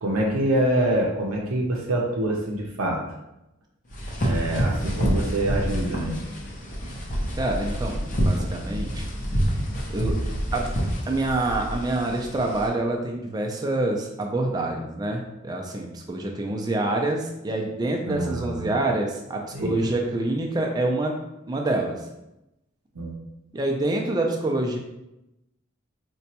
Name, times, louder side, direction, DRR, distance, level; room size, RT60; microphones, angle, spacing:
voice 1, 0.0-3.0 4.2-6.2 18.1-18.7 19.5-19.7 23.0-23.2, right 1 dB, 85° right, -2 dB, 0.6 m, -25 dB
sound 1, 3.9-12.7, equal, 40° left, 0.6 m, -27 dB
voice 2, 7.4-9.1 9.9-10.2 10.5-10.7 11.1-21.2 21.5-22.1 23.5-24.8, right 2 dB, 20° right, 1 dB, 0.4 m, -26 dB
4.0 x 2.2 x 2.8 m, 0.91 s
head